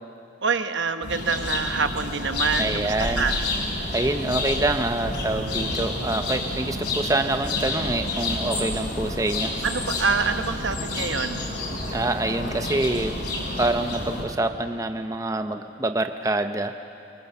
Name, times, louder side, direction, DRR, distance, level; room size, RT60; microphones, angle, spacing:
voice 1, 0.4-3.4 9.6-11.5, right 5 dB, 70° right, 9 dB, 1.1 m, -26 dB
sound 1, 1.0-14.2, left 2 dB, 60° left, 5.1 m, -29 dB
voice 2, 2.6-3.2 3.9-9.5 11.9-13.2 13.6-16.8, right 2 dB, 15° right, 7 dB, 0.6 m, -26 dB
23.5 x 23.0 x 7.0 m, 2.6 s
head